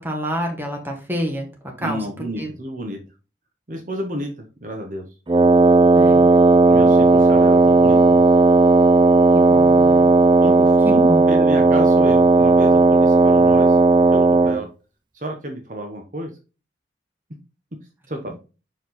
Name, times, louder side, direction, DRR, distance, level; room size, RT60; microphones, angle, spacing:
voice 1, 0.0-1.5 1.8-2.0 2.4-2.5 5.9-6.3 9.3-10.1 10.8-11.2, equal, 10° right, 1 dB, 1.5 m, -28 dB
voice 2, 1.8-3.0 3.7-5.1 6.7-8.2 10.4-13.8 14.1-14.7 15.1-16.3 18.1-18.4, right 1 dB, 45° right, 3 dB, 1.0 m, -30 dB
Wind instrument woodwind instrument, 5.3-14.6, right 3 dB, 25° right, 0.4 m, -14 dB
5.8 x 4.7 x 4.1 m, 0.32 s
head